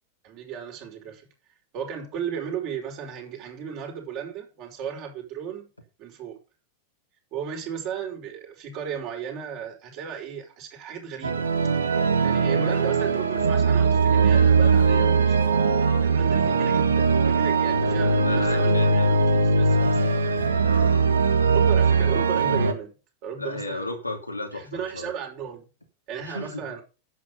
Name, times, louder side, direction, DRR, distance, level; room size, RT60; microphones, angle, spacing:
voice 1, 0.2-1.3 1.7-5.7 6.0-6.4 7.3-11.5 12.2-15.4 16.0-20.0 21.5-22.9 23.2-23.9 24.5-25.6 26.1-26.8, right 7 dB, 40° right, 5.5 m, -35 dB
sound 1, 11.2-22.7, right 4 dB, 70° right, 1.4 m, -20 dB
voice 2, 18.2-19.2 20.6-21.1 23.4-25.1 26.2-26.6, left 2 dB, 85° left, 2.8 m, -34 dB
11.0 x 8.5 x 5.6 m
figure-of-eight pair, 90°, 0 cm